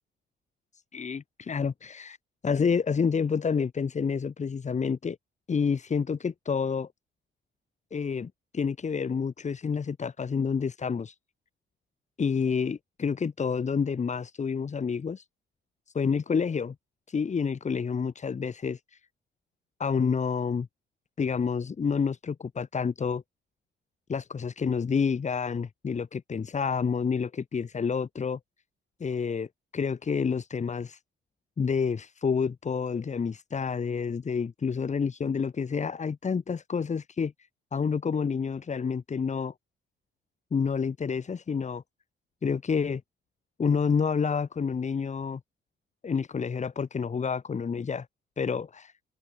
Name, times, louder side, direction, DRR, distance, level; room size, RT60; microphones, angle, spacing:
voice 1, 0.9-2.2 2.4-5.2 5.5-6.9 7.9-11.2 12.2-15.3 15.9-16.8 17.1-19.0 19.8-20.7 21.2-23.2 24.1-28.4 29.0-31.0 31.6-37.3 37.7-39.5 40.5-41.8 42.4-43.0 43.6-45.4 46.0-48.1 48.4-48.9, left 6 dB, 35° left, 1.9 m, -29 dB
open air
cardioid pair, 90°, 20 cm